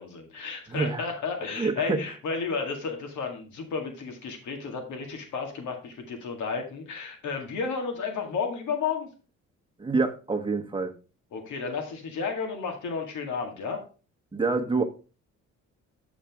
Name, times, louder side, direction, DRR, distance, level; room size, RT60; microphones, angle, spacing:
voice 1, 0.0-9.1 11.3-13.8, left 5 dB, 75° left, 4 dB, 2.0 m, -32 dB
voice 2, 0.7-1.1 1.6-2.0 9.8-10.9 14.3-14.8, right 4 dB, 15° right, 5 dB, 1.2 m, -26 dB
7.2 x 7.2 x 3.5 m, 0.35 s
cardioid pair, 90°, 30 cm